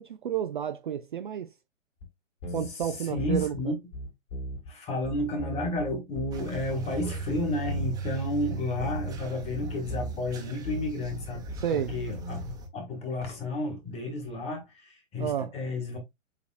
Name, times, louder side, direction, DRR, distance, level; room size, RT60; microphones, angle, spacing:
voice 1, 0.0-1.5 2.5-3.6 11.6-12.0 15.2-15.5, right 9 dB, 40° right, 0.4 m, -31 dB
sound 1, 2.0-2.1 2.4-3.6 3.9-4.7 5.0-8.1 8.4-9.2 9.5-10.3 10.6-12.5, equal, 45° left, 2.7 m, -37 dB
voice 2, 2.9-3.7 4.7-11.4 11.7-12.4 12.7-16.0, left 1 dB, 15° left, 1.6 m, -32 dB
sound 2, 6.3-12.7, right 5 dB, 10° right, 0.9 m, -38 dB
7.2 x 3.0 x 2.4 m
hypercardioid pair, 135°, 39 cm